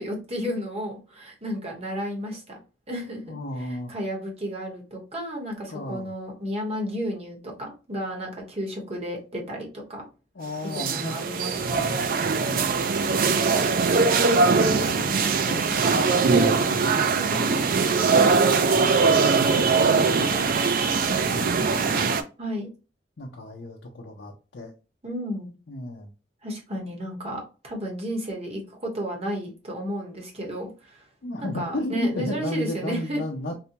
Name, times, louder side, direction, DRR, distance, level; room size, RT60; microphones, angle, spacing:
voice 1, 0.0-2.6 2.9-3.3 3.6-10.1 10.7-11.9 17.1-17.4 22.4-22.7 25.0-25.5 26.4-31.0 31.4-33.2, equal, 35° right, 0 dB, 1.1 m, -33 dB
voice 2, 3.3-3.9 5.7-6.1 10.3-11.4 11.7-12.1 12.3-13.0 14.6-18.3 18.9-20.6 21.2-22.1 23.2-24.7 25.7-26.1 31.2-33.5, left 1 dB, 80° left, -2 dB, 0.7 m, -35 dB
sound 1, 10.7-22.2, right 4 dB, 55° right, 0.4 m, -21 dB
4.1 x 2.2 x 2.8 m, 0.33 s
head